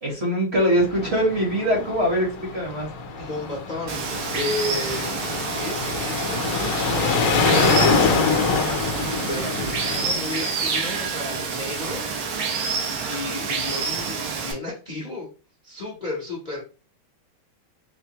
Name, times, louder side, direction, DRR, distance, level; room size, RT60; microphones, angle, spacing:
voice 1, 0.0-2.9, equal, 40° right, -1 dB, 1.0 m, -22 dB
sound 1, 0.8-10.1, left 4 dB, 70° left, 1.2 m, -25 dB
voice 2, 3.2-5.2 5.6-12.0 13.0-15.3 15.6-16.6, left 2 dB, 45° left, -3 dB, 0.6 m, -33 dB
Water, 3.9-14.5, right 5 dB, 85° right, 1.7 m, -28 dB
4.8 x 2.1 x 2.9 m, 0.36 s
omnidirectional pair, 2.3 m